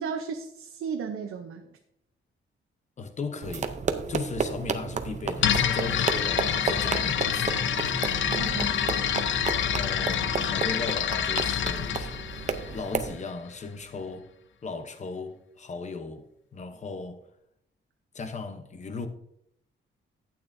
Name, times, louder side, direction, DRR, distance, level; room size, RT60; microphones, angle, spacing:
voice 1, 0.0-1.7 8.2-8.7, right 6 dB, 90° right, 0.8 m, -34 dB
voice 2, 3.0-3.7 4.1-7.6 9.5-12.1 12.7-14.3 14.6-16.3 16.5-17.2 18.1-19.1, left 4 dB, 35° left, 0.8 m, -36 dB
sound 1, 3.4-13.1, right 5 dB, 35° right, 0.6 m, -32 dB
sound 2, 5.4-13.2, left 9 dB, 65° left, 0.6 m, -27 dB
12.0 x 8.7 x 2.6 m
wide cardioid pair, 175°, 21 cm